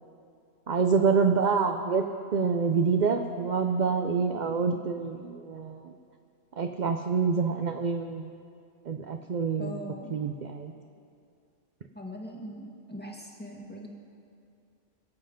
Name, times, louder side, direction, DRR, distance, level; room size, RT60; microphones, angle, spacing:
voice 1, 0.7-2.0 2.3-5.8 6.6-8.3 8.9-9.8 10.1-10.7, right 5 dB, 50° right, 5 dB, 0.6 m, -26 dB
voice 2, 9.6-10.1 11.9-13.9, equal, 10° left, -1 dB, 1.5 m, -41 dB
22.0 x 7.9 x 5.1 m, 2.4 s
omnidirectional pair, 1.2 m